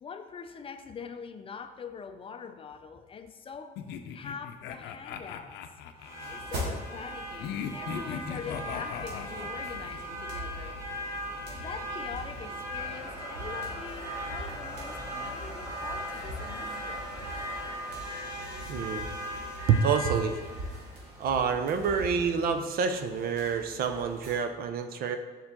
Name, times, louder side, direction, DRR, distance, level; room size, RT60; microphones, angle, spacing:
voice 1, 0.0-3.8 4.1-5.6 6.3-10.8 11.4-17.0, left 6 dB, 35° left, 9 dB, 0.5 m, -43 dB
sound 1, 3.8-6.5 7.4-10.0, left 8 dB, 85° left, 0.5 m, -39 dB
sound 2, 6.0-24.3, equal, 90° right, 2.1 m, -38 dB
sound 3, 12.8-21.8, left 1 dB, 5° right, 1.2 m, -47 dB
voice 2, 18.7-19.1 19.7-20.4 21.2-25.2, right 6 dB, 60° right, 8 dB, 0.7 m, -27 dB
7.2 x 5.5 x 3.7 m, 1.3 s
cardioid pair, 110°, 17 cm